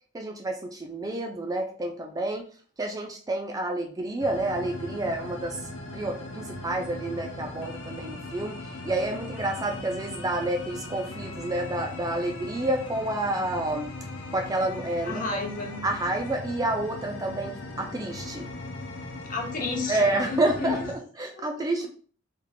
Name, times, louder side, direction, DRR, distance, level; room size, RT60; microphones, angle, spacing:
voice 1, 0.1-2.5 2.8-5.6 5.9-13.9 14.3-15.4 15.8-18.5 19.9-21.9, right 2 dB, 20° right, 3 dB, 0.4 m, -29 dB
sound 1, 4.2-21.0, left 2 dB, 80° left, 0.5 m, -39 dB
voice 2, 15.0-15.8 19.3-20.8 21.3-21.4 21.8-21.9, left 3 dB, 45° left, 2 dB, 0.8 m, -32 dB
3.4 x 2.4 x 3.2 m, 0.42 s
head